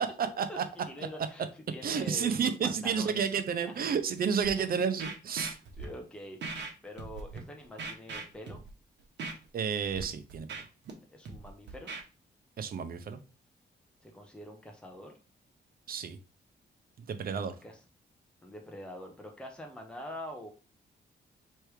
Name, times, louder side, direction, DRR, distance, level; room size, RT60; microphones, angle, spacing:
voice 1, 0.5-3.3 4.6-4.8 5.8-8.6 11.1-11.9 14.0-15.2 17.6-17.8 18.4-20.5, left 1 dB, 5° left, 2 dB, 0.9 m, -45 dB
voice 2, 1.8-5.6 9.5-10.5 12.6-13.2 15.9-16.2 17.0-17.5, right 6 dB, 55° right, 9 dB, 0.6 m, -31 dB
Scratching (performance technique), 4.4-4.5 5.0-5.8 6.4-6.7 7.0-7.4 7.8-8.7 9.2-9.3 9.8-10.0 10.3-10.9 11.2-12.0, right 4 dB, 80° right, 1.1 m, -39 dB
3.3 x 3.2 x 4.8 m, 0.34 s
cardioid pair, 120°, 18 cm